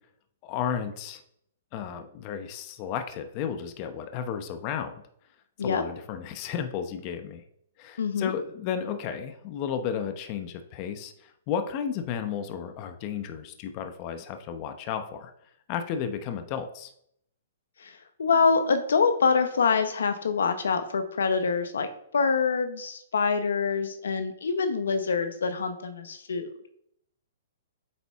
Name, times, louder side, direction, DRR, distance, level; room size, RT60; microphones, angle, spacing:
voice 1, 0.4-1.2 1.7-5.0 5.6-7.4 7.8-15.3 15.7-16.9, left 8 dB, 35° left, 8 dB, 0.8 m, -33 dB
voice 2, 8.0-8.4 17.8-21.9 22.1-26.5, left 5 dB, 80° left, 9 dB, 0.8 m, -25 dB
8.6 x 4.1 x 3.5 m, 0.70 s
hypercardioid pair, 140°, 0 cm